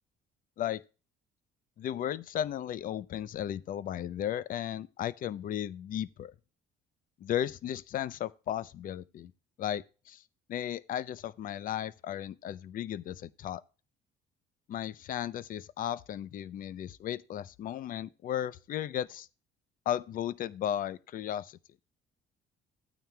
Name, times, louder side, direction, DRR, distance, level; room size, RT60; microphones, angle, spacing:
voice 1, 1.8-6.3 7.2-9.3 9.6-10.2 10.5-13.6 14.7-19.3 19.9-21.6, left 11 dB, 55° left, 0.6 m, -35 dB
14.0 x 9.1 x 2.2 m
cardioid pair, 110°, 17 cm